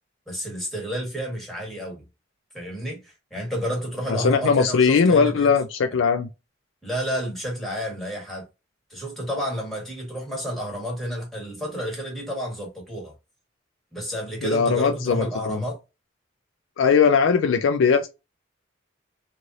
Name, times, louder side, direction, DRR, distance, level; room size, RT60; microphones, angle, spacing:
voice 1, 0.3-2.0 2.5-5.5 6.8-8.4 8.9-13.1 13.9-15.8, equal, ahead, 1.3 m, -30 dB
voice 2, 4.1-6.3 14.4-15.6 16.8-18.1, left 5 dB, 70° left, 0.4 m, -20 dB
3.1 x 2.5 x 2.6 m
head